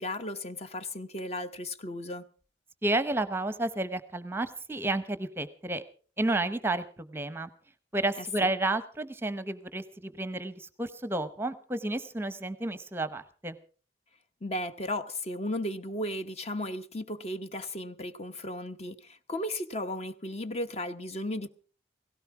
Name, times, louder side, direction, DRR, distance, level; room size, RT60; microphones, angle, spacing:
voice 1, 0.0-2.3 8.2-8.3 14.4-21.5, left 1 dB, 35° left, 0.9 m, -35 dB
voice 2, 2.8-5.8 6.2-7.5 7.9-13.6, right 2 dB, 15° right, 0.8 m, -31 dB
17.5 x 16.5 x 4.8 m
head